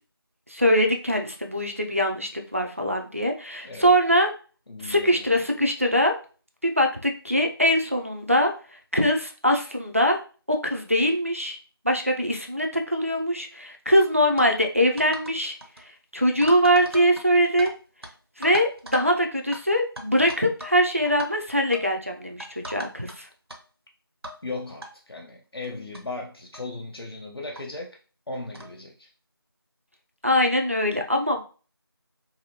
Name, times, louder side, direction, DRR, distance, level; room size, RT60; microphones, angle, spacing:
voice 1, 0.5-4.3 4.8-6.2 6.6-8.5 8.9-10.2 10.5-11.6 11.8-15.6 16.1-17.7 18.4-23.3 30.2-31.4, equal, 35° right, 0.4 m, -22 dB
voice 2, 3.6-4.0 4.7-5.4 24.4-28.0 28.3-29.1, left 2 dB, 75° left, 0.6 m, -37 dB
sound 1, 14.4-14.5 15.0-15.3 15.6-15.8 16.4-17.7 18.0-18.1 18.4-19.1 19.5-19.6 20.0-20.8 21.0-21.3 21.7-21.9 22.4-23.1 23.5-23.6 24.2-24.4 24.8-24.9 25.6-25.7 25.9-26.0 26.5-26.7 27.5-27.6 28.5-28.7, right 1 dB, 75° right, 0.7 m, -39 dB
2.7 x 2.6 x 2.7 m
figure-of-eight pair, 175°, 13 cm